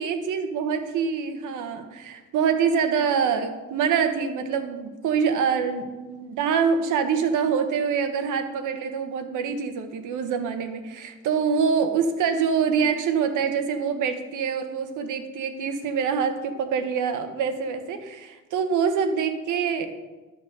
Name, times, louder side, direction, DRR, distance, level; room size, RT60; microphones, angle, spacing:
voice 1, 0.0-19.9, right 6 dB, 80° right, 8 dB, 1.1 m, -25 dB
11.5 x 4.0 x 6.7 m, 1.2 s
cardioid pair, 90°, 30 cm